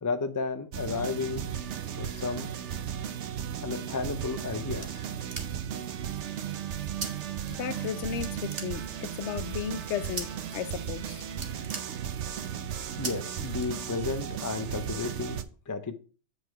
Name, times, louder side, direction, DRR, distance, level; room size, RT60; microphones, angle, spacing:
voice 1, 0.0-1.5 1.9-2.5 3.6-5.1 13.0-15.4 15.7-16.0, left 4 dB, 30° left, 0.4 m, -33 dB
sound 1, 0.7-15.4, right 9 dB, 65° right, 0.9 m, -35 dB
sound 2, 4.8-5.8 7.0-7.1 7.4-7.9 8.2-9.2 10.2-10.6 10.9-11.0 11.3-12.5 13.0-13.1 13.6-14.2, right 4 dB, 45° right, 1.3 m, -39 dB
voice 2, 7.5-11.2, left 9 dB, 65° left, 0.8 m, -35 dB
8.0 x 4.9 x 4.6 m
omnidirectional pair, 1.4 m